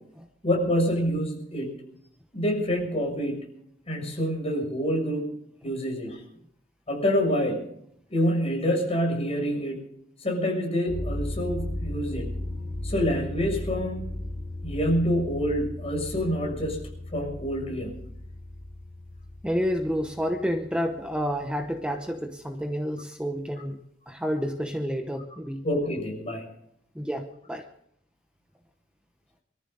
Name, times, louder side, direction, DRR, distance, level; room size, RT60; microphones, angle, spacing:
voice 1, 0.4-1.7 2.3-3.4 3.9-5.3 5.6-6.2 6.9-7.6 8.1-9.8 10.2-12.3 12.8-14.0 14.6-16.8 17.1-18.0 25.6-26.5, equal, 35° left, 0 dB, 6.8 m, -27 dB
sound 1, 10.9-21.7, left 1 dB, 65° left, 4.9 m, -36 dB
voice 2, 19.4-23.8 24.1-25.6 26.9-27.7, equal, 5° right, 5 dB, 0.9 m, -29 dB
25.0 x 14.0 x 3.9 m, 0.71 s
head